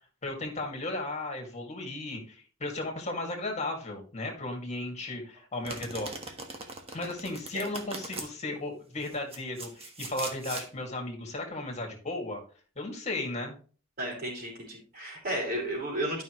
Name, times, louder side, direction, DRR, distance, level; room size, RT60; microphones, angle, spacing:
voice 1, 0.2-6.2 6.9-12.4 12.8-13.5, left 2 dB, 35° left, 2 dB, 2.2 m, -35 dB
Domestic sounds home sounds, 5.6-8.3 9.0-10.7, right 3 dB, 30° right, 1.4 m, -40 dB
voice 2, 14.0-16.2, right 1 dB, 45° right, -1 dB, 4.4 m, -33 dB
12.0 x 5.6 x 3.1 m, 0.38 s
head